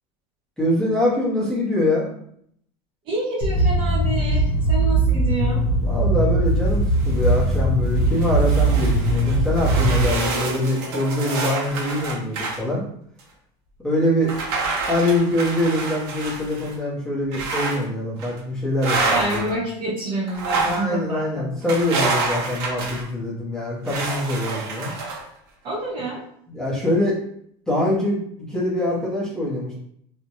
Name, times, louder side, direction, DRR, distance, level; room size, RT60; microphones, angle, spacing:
voice 1, 0.6-2.1 5.8-12.8 13.8-14.4 14.9-19.5 20.6-24.9 26.5-27.2 27.7-28.2 28.5-29.7, left 1 dB, 5° left, -7 dB, 0.7 m, -24 dB
voice 2, 3.1-5.6 19.1-21.6 25.6-26.2, right 1 dB, 40° right, -2 dB, 0.7 m, -28 dB
sound 1, 3.4-10.1, right 2 dB, 60° left, 0.9 m, -20 dB
sound 2, 6.7-7.6 8.0-12.6 13.2-13.3 14.2-16.7 17.3-17.8 18.2-18.4 18.8-19.5 20.3-20.9 21.7-23.1 23.9-25.2, right 3 dB, 80° right, 0.7 m, -28 dB
2.5 x 2.1 x 2.9 m, 0.67 s
cardioid pair, 155°, 13 cm